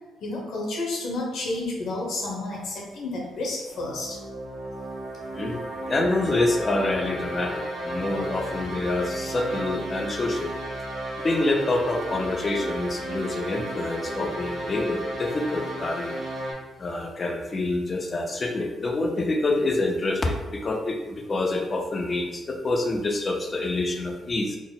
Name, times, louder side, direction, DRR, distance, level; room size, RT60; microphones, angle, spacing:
voice 1, 0.2-4.2, left 2 dB, 60° left, -1 dB, 0.9 m, -31 dB
sound 1, 3.7-16.5, right 1 dB, 55° right, 1.3 m, -34 dB
voice 2, 5.3-10.6 11.2-16.1 16.8-24.6, left 2 dB, 25° left, 3 dB, 0.4 m, -27 dB
4.0 x 2.0 x 3.9 m, 1.1 s
cardioid pair, 175°, 0 cm